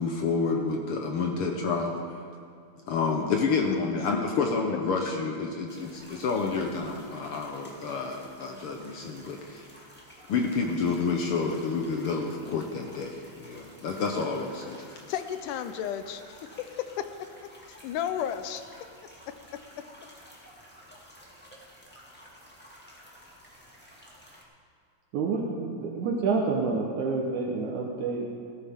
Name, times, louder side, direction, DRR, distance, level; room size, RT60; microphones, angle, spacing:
voice 1, 0.0-2.0 2.9-9.7 10.3-14.8, left 4 dB, 70° left, 2 dB, 1.3 m, -29 dB
sound 1, 5.7-24.4, equal, 5° left, 1.1 m, -52 dB
voice 2, 15.1-17.3 17.7-18.6, left 9 dB, 85° left, 10 dB, 2.2 m, -33 dB
voice 3, 25.1-28.3, right 4 dB, 75° right, -1 dB, 2.4 m, -28 dB
18.0 x 13.0 x 3.6 m, 2.3 s
omnidirectional pair, 3.6 m